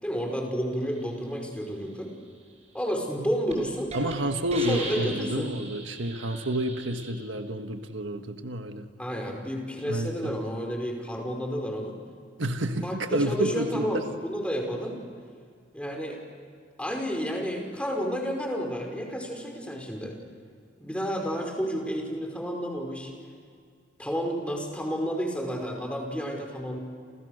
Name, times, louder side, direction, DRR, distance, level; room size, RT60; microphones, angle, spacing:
voice 1, 0.0-2.1 2.7-3.9 4.7-5.5 9.0-12.0 12.7-15.0 15.7-16.2 16.8-20.2 20.8-23.1 24.0-26.8, equal, 5° left, 2 dB, 5.2 m, -31 dB
Hiss, 3.1-3.2 3.5-3.6 3.9-4.1 4.5-7.1, right 3 dB, 35° right, 6.8 m, -38 dB
voice 2, 3.9-8.9 9.8-10.4 12.4-14.0, right 1 dB, 90° right, 6 dB, 1.6 m, -29 dB
30.0 x 29.0 x 6.6 m, 2.1 s
head